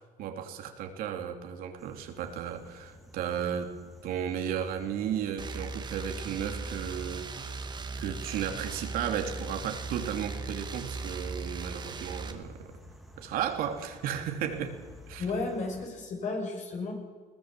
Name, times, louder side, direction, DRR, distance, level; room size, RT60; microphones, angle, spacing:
voice 1, 0.0-3.7 4.0-7.5 8.0-12.6 13.2-14.8 15.1-15.2, right 9 dB, 70° right, 4 dB, 2.9 m, -34 dB
sound 1, 1.8-15.9, equal, ahead, 2.9 m, -52 dB
sound 2, 5.4-12.3, right 3 dB, 30° right, 2.3 m, -38 dB
voice 2, 15.2-16.9, left 3 dB, 50° left, 2 dB, 6.4 m, -33 dB
21.5 x 18.0 x 7.6 m, 1.5 s
supercardioid pair, 100°, 16 cm